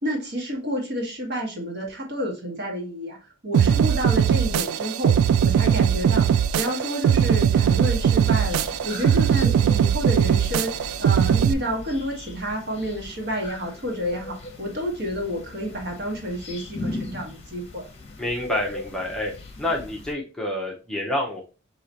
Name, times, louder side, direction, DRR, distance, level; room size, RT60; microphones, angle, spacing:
voice 1, 0.0-3.2 3.4-10.7 11.0-17.9, equal, 50° right, 0 dB, 1.3 m, -30 dB
sound 1, 3.5-11.5, right 8 dB, 85° right, 0.3 m, -20 dB
sound 2, 7.9-20.1, left 1 dB, 30° left, 0.8 m, -39 dB
voice 2, 18.2-19.3 19.6-21.4, left 1 dB, 5° left, -3 dB, 0.6 m, -28 dB
4.8 x 2.8 x 2.8 m, 0.32 s
head